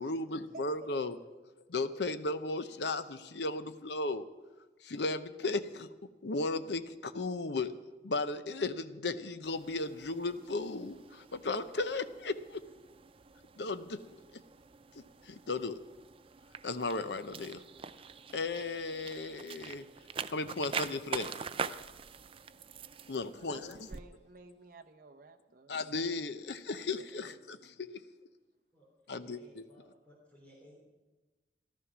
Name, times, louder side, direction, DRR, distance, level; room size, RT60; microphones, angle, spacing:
voice 1, 0.0-1.2 1.7-4.3 4.8-5.9 6.2-7.7 8.0-12.6 13.6-14.2 15.0-15.8 16.6-17.6 18.3-19.9 20.3-21.5 23.1-23.8 25.7-28.0 29.1-29.6, left 3 dB, 70° left, 11 dB, 0.7 m, -35 dB
voice 2, 0.5-1.4 23.4-25.7 26.7-27.5, right 3 dB, 50° right, 3 dB, 0.9 m, -54 dB
sound 1, 9.4-24.0, right 6 dB, 30° right, 0.4 m, -44 dB
voice 3, 28.7-30.8, left 1 dB, 10° left, -3 dB, 3.2 m, -60 dB
14.5 x 12.5 x 6.1 m, 1.2 s
head